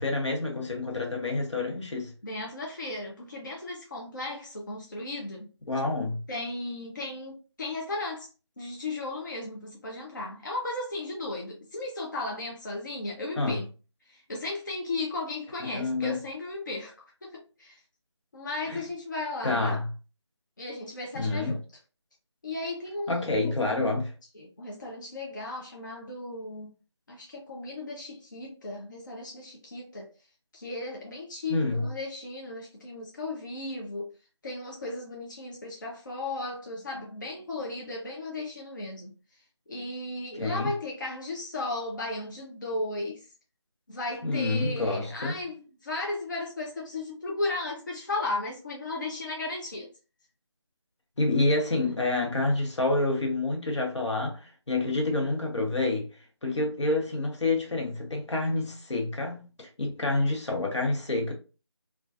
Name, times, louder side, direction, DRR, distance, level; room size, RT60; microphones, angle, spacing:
voice 1, 0.0-2.1 5.7-6.2 13.4-13.6 15.6-16.2 18.7-18.8 19.4-19.9 21.1-21.6 23.1-24.1 31.5-31.8 40.3-40.7 44.2-45.4 51.2-56.1 56.4-61.3, left 2 dB, 75° left, 0.9 m, -28 dB
voice 2, 2.2-5.5 6.3-8.3 8.6-13.7 14.1-17.8 18.3-19.8 20.6-21.6 22.4-23.9 24.3-26.7 27.1-30.1 30.5-34.1 34.4-39.1 39.7-43.3 43.9-49.9, left 2 dB, 40° left, 0.4 m, -35 dB
2.3 x 2.2 x 2.5 m
figure-of-eight pair, 170°, 15 cm